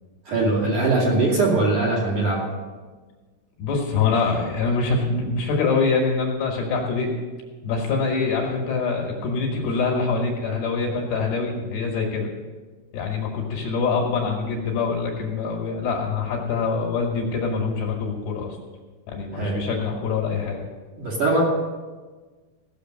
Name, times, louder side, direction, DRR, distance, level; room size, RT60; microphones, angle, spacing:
voice 1, 0.3-2.4 19.3-19.6 21.0-21.4, right 2 dB, 45° right, -4 dB, 3.1 m, -21 dB
voice 2, 3.6-7.1 7.6-12.3 12.9-18.6 19.1-20.7, left 4 dB, 65° left, 0 dB, 3.2 m, -24 dB
16.5 x 6.6 x 6.5 m, 1.4 s
omnidirectional pair, 5.8 m